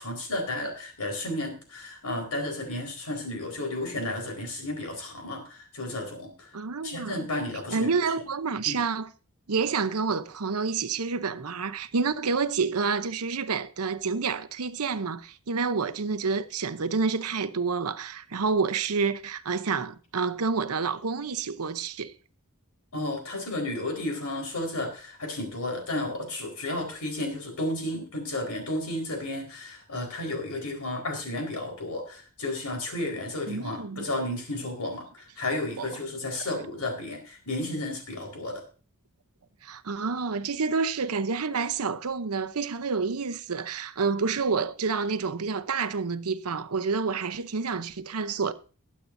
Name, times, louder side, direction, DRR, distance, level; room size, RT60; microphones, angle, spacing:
voice 1, 0.0-6.6 6.8-7.9 8.6-8.8 22.9-38.6, left 1 dB, 80° left, 4.5 m, -33 dB
voice 2, 6.5-7.3 7.7-9.1 9.5-22.1 33.5-34.1 35.8-35.9 39.6-48.5, right 5 dB, 80° right, 0.8 m, -28 dB
21.5 x 8.5 x 2.7 m
head